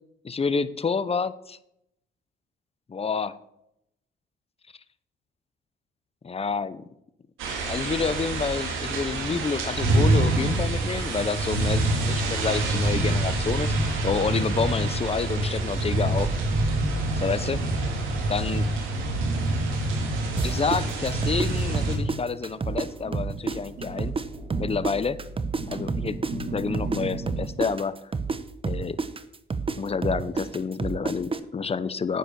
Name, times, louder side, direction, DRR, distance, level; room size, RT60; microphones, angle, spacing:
voice 1, 0.2-1.6 2.9-3.4 6.2-6.9 7.7-13.7 14.0-16.3 17.2-17.6 18.3-18.7 20.4-24.1 24.6-25.2 25.7-28.0 28.6-29.0 29.8-32.2, left 5 dB, 30° left, 15 dB, 0.9 m, -28 dB
sound 1, 7.4-22.0, right 2 dB, 85° right, 3.5 m, -26 dB
sound 2, 18.9-20.7 21.1-27.4, right 2 dB, 55° right, 5.2 m, -38 dB
sound 3, 20.4-22.9 23.1-27.0 27.3-31.4, right 4 dB, 25° right, 1.0 m, -29 dB
9.8 x 9.0 x 6.9 m, 0.80 s
cardioid pair, 90°, 20 cm